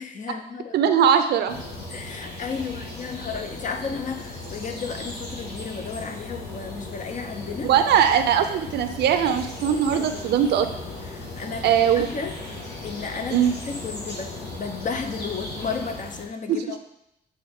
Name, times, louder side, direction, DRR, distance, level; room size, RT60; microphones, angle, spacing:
voice 1, 0.0-0.9 1.9-7.7 9.9-10.4 11.1-12.4 12.8-16.8, left 5 dB, 50° left, 6 dB, 0.8 m, -33 dB
voice 2, 0.7-1.6 7.6-10.7 11.6-12.1 13.3-13.6 16.5-16.7, right 8 dB, 80° right, 9 dB, 0.6 m, -20 dB
sound 1, 1.5-16.3, left 2 dB, 85° left, 1.5 m, -37 dB
8.4 x 3.5 x 3.6 m, 0.79 s
cardioid pair, 80°, 17 cm